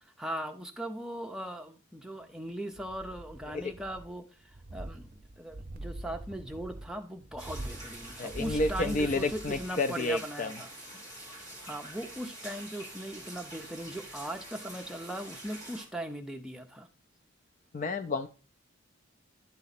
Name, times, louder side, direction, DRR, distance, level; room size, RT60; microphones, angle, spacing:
voice 1, 0.2-4.3 4.7-5.1 5.4-10.7 11.6-16.9, right 1 dB, 5° right, 3 dB, 0.6 m, -39 dB
sound 1, 2.7-4.2 4.5-9.8 10.1-10.2, right 1 dB, 40° right, 0.6 m, -43 dB
sound 2, 7.4-15.9, right 1 dB, 15° left, 1.8 m, -46 dB
voice 2, 8.2-10.5 17.7-18.3, left 2 dB, 35° left, 11 dB, 0.3 m, -30 dB
10.5 x 4.1 x 4.1 m, 0.35 s
head